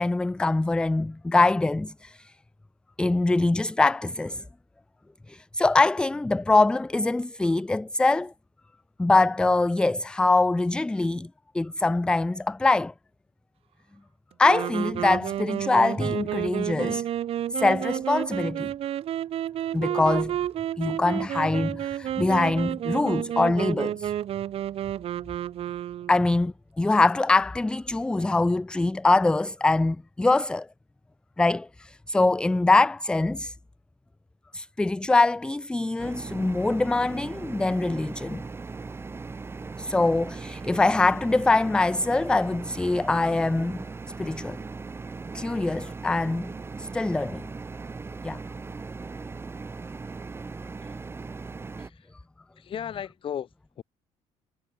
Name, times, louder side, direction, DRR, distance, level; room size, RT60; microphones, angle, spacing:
voice 1, 0.0-2.3 3.0-4.4 5.3-8.3 9.0-11.3 11.5-12.9 14.4-17.0 17.5-18.7 19.7-20.4 20.8-24.1 26.1-30.7 31.4-33.5 34.5-38.4 39.8-43.8 44.2-44.6 45.3-46.5 46.8-47.4 48.2-48.4, left 2 dB, 5° left, 0.4 m, -23 dB
sound 1, 14.4-26.3, right 11 dB, 50° right, 1.3 m, -30 dB
sound 2, 36.0-51.9, right 4 dB, 20° right, 1.9 m, -38 dB
voice 2, 51.8-52.1 52.5-53.8, left 9 dB, 45° left, 3.5 m, -36 dB
cardioid pair, 120°, 12 cm